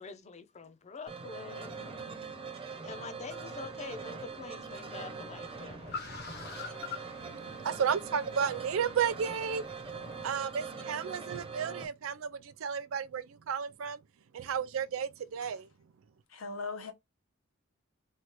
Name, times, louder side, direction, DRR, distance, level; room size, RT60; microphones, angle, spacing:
voice 1, 0.0-2.1 2.8-6.0, left 4 dB, 35° left, 0.5 m, -45 dB
sound 1, 1.1-11.9, right 4 dB, 30° right, 0.6 m, -42 dB
Car, 3.1-10.5, left 5 dB, 55° left, 0.9 m, -48 dB
voice 2, 7.2-9.6 10.2-14.0 14.3-15.7, right 7 dB, 90° right, 0.4 m, -33 dB
voice 3, 16.3-16.9, left 4 dB, 85° left, 0.8 m, -39 dB
3.2 x 2.3 x 2.9 m
head